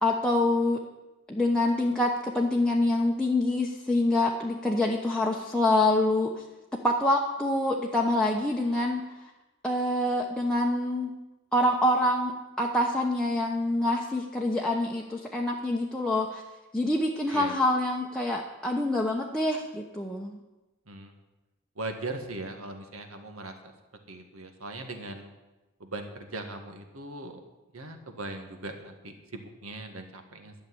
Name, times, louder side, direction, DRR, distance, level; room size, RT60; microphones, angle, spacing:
voice 1, 0.0-0.8 1.3-6.3 6.8-9.0 9.6-11.1 11.5-16.4 16.7-20.4, left 1 dB, 5° left, -2 dB, 1.0 m, -26 dB
voice 2, 21.8-23.7 24.1-25.3 25.8-27.4 27.7-30.5, right 2 dB, 70° right, 5 dB, 1.8 m, -39 dB
12.5 x 6.7 x 9.8 m, 1.1 s
head